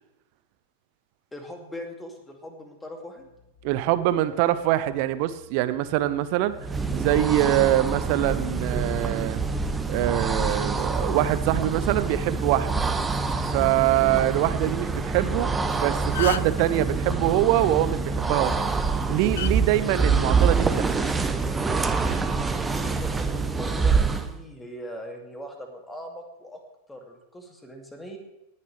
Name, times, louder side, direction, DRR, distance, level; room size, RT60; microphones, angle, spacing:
voice 1, 1.3-3.2 22.4-26.6 26.9-28.2, equal, 10° left, 3 dB, 2.4 m, -40 dB
sound 1, 3.2-11.0, equal, 40° left, 1.5 m, -47 dB
voice 2, 3.6-6.5 6.9-9.4 9.9-12.8 13.4-18.7 19.1-21.0, right 14 dB, 45° right, 14 dB, 0.8 m, -24 dB
sound 2, 6.5-24.4, right 4 dB, 10° right, 0.9 m, -26 dB
sound 3, 15.6-15.7 16.0-16.6 18.3-18.5 19.4-19.5 20.6-20.8, left 11 dB, 60° left, 0.3 m, -32 dB
19.0 x 9.8 x 3.3 m, 0.94 s
figure-of-eight pair, 90°, 0 cm